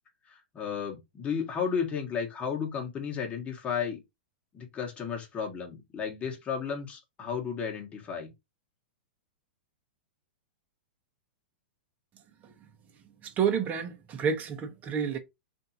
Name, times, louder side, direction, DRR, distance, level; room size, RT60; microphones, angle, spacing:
voice 1, 0.3-4.0 4.5-8.3, left 6 dB, 25° left, 1.3 m, -33 dB
voice 2, 13.2-15.2, right 7 dB, 30° right, 1.0 m, -29 dB
3.5 x 2.7 x 2.7 m
hypercardioid pair, 120°, 6 cm